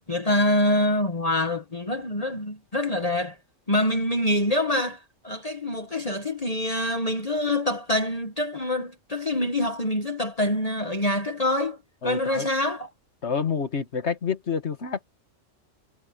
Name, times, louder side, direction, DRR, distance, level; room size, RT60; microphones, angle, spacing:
voice 1, 0.1-3.4 3.7-5.0 5.2-11.8 12.0-12.9, left 1 dB, 30° left, 1.4 m, -25 dB
voice 2, 12.0-12.5 13.2-15.0, left 6 dB, 60° left, 1.8 m, -28 dB
omnidirectional pair, 1.3 m